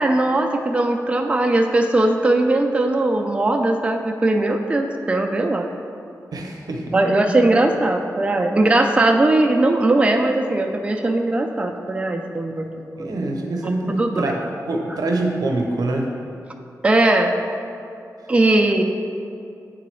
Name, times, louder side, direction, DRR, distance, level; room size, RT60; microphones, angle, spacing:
voice 1, 0.0-5.7 6.9-12.7 12.9-13.1 14.0-14.1 16.8-17.3 18.3-18.8, right 2 dB, 20° right, 3 dB, 0.3 m, -19 dB
voice 2, 6.3-6.9 12.9-14.4 14.7-16.1, right 2 dB, 90° right, 1 dB, 0.7 m, -24 dB
8.2 x 3.8 x 3.1 m, 2.5 s
wide cardioid pair, 115°, 6 cm